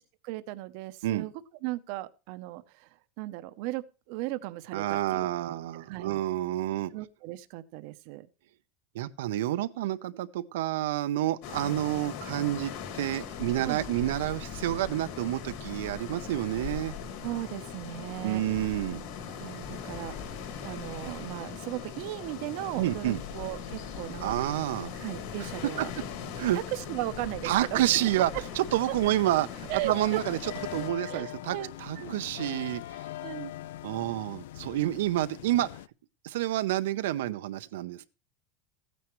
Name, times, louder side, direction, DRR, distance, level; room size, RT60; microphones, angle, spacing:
voice 1, 0.2-1.3 1.6-2.9 3.2-6.2 6.9-8.3 13.6-13.9 17.2-18.4 19.3-24.4 24.9-25.9 26.5-27.9 29.7-30.2 31.0-31.7 32.0-32.1 33.2-33.5, right 17 dB, 50° right, 0.7 m, -37 dB
voice 2, 4.7-6.9 8.9-16.9 18.2-19.0 22.8-23.2 24.2-24.9 26.4-26.6 27.4-33.0 33.8-35.7 36.2-38.0, right 14 dB, 85° right, 0.6 m, -29 dB
sound 1, 11.4-30.9, left 7 dB, 55° left, 2.1 m, -40 dB
sound 2, 23.0-35.9, left 14 dB, 85° left, 0.4 m, -44 dB
15.0 x 9.3 x 3.1 m
supercardioid pair, 175°, 0 cm